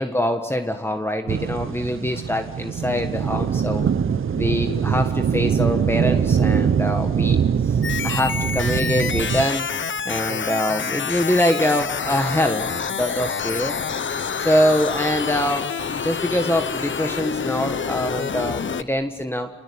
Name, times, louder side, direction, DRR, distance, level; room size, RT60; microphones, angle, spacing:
voice 1, 0.0-3.9 4.3-9.7 10.0-13.7 14.4-15.7 16.0-19.5, left 1 dB, 10° left, 6 dB, 1.6 m, -24 dB
sound 1, 1.3-9.5, right 7 dB, 90° right, 0.9 m, -22 dB
sound 2, 7.8-18.8, left 6 dB, 70° left, 1.0 m, -27 dB
28.5 x 20.5 x 8.7 m, 1.1 s
wide cardioid pair, 85°, 20 cm